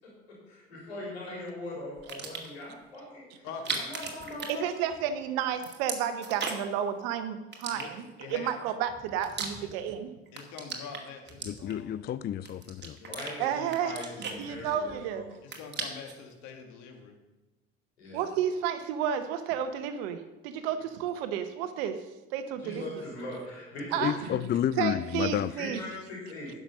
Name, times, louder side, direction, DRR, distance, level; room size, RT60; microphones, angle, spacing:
voice 1, 0.0-3.2 3.7-4.8 13.0-15.3 18.0-18.2 22.6-24.3 25.6-26.5, left 1 dB, 90° left, -4 dB, 4.0 m, -40 dB
sound 1, 2.0-2.6 3.5-5.1 5.4-6.8 7.5-8.3 8.9-10.0 10.3-11.9 12.4-13.3 13.7-15.0 15.3-16.2, right 5 dB, 35° right, 2.2 m, -37 dB
voice 2, 3.4-3.8 7.7-7.9 8.2-8.5 9.6-9.7 10.3-11.9 12.8-13.2 15.4-17.2 22.6-22.7, left 6 dB, 65° left, 5 dB, 1.9 m, -44 dB
voice 3, 4.5-10.1 13.4-13.9 14.4-15.3 18.1-22.0 22.3-22.9 23.9-24.2 24.8-25.8, right 9 dB, 75° right, 10 dB, 1.1 m, -31 dB
voice 4, 11.4-13.0 24.0-25.5, left 10 dB, 35° left, 15 dB, 0.4 m, -30 dB
10.0 x 6.2 x 6.7 m, 1.1 s
hypercardioid pair, 60°, 31 cm